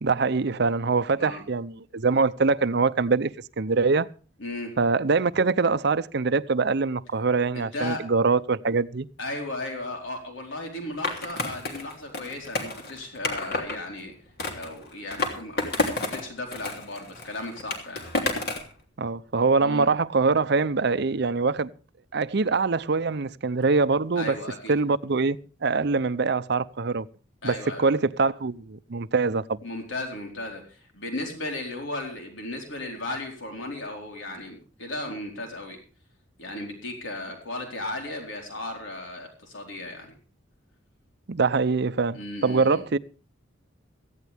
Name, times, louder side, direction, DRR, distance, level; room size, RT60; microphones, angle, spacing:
voice 1, 0.0-3.3 3.6-4.1 4.8-9.1 19.0-21.7 22.1-24.4 24.7-25.4 25.6-27.1 27.4-29.6 41.3-43.0, right 4 dB, 60° right, 0.6 m, -24 dB
voice 2, 4.4-4.7 7.5-8.1 9.2-14.1 14.5-18.1 19.6-19.9 24.2-24.7 27.4-27.9 29.6-35.8 36.4-40.1 42.1-42.8, left 2 dB, 90° left, 4.3 m, -35 dB
Skateboard, 11.0-13.8 14.4-16.2 16.5-18.7, left 2 dB, 55° left, 3.2 m, -30 dB
17.5 x 15.0 x 3.5 m
head